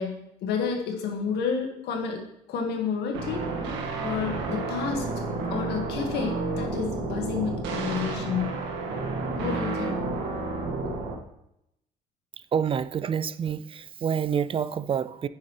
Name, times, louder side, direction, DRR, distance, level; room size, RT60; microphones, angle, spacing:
voice 1, 0.0-2.2 2.5-3.5 4.0-5.1 5.5-8.6 9.4-10.0 10.3-10.4 10.8-10.9, left 6 dB, 80° left, 1.9 m, -30 dB
sound 1, 3.1-11.1, right 3 dB, 80° right, 1.9 m, -31 dB
voice 2, 12.5-15.3, right 7 dB, 30° right, 0.4 m, -27 dB
9.5 x 9.1 x 3.3 m
cardioid pair, 110°, 17 cm